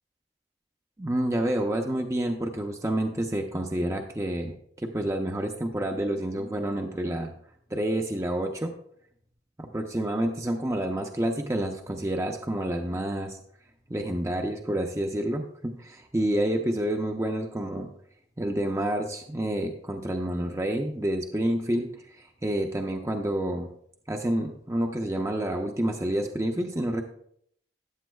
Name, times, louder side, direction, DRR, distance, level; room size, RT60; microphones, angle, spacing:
voice 1, 1.0-7.3 7.7-8.7 9.6-13.4 13.9-17.9 18.4-23.7 24.1-27.0, right 1 dB, 15° right, 3 dB, 0.6 m, -29 dB
14.0 x 9.1 x 2.3 m, 0.68 s
head